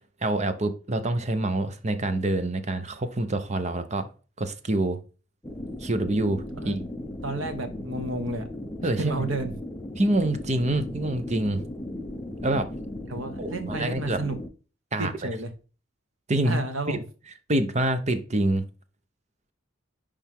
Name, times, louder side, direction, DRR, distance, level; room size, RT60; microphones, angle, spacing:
voice 1, 0.2-4.1 4.4-5.0 5.8-6.9 8.8-9.3 10.0-11.6 12.4-12.7 13.4-14.2 14.9-15.1 16.3-16.6 16.9-17.0 17.5-18.6, right 2 dB, 35° right, 0.9 m, -26 dB
sound 1, 5.4-14.5, left 1 dB, 10° left, 0.8 m, -36 dB
voice 2, 7.2-8.5 9.0-9.5 13.1-14.4 15.0-15.5 16.4-17.0, right 2 dB, 85° right, 1.3 m, -31 dB
10.0 x 3.5 x 3.6 m
head